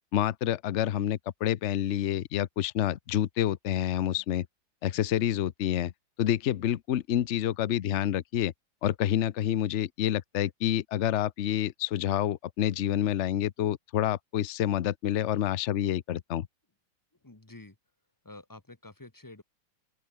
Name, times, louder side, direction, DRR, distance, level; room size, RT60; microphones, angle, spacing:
voice 1, 0.1-4.5 4.8-5.9 6.2-8.5 8.8-16.5, left 11 dB, 80° left, 0.6 m, -28 dB
voice 2, 17.2-17.8 18.2-19.4, left 2 dB, 10° left, 1.2 m, -48 dB
open air
omnidirectional pair, 2.2 m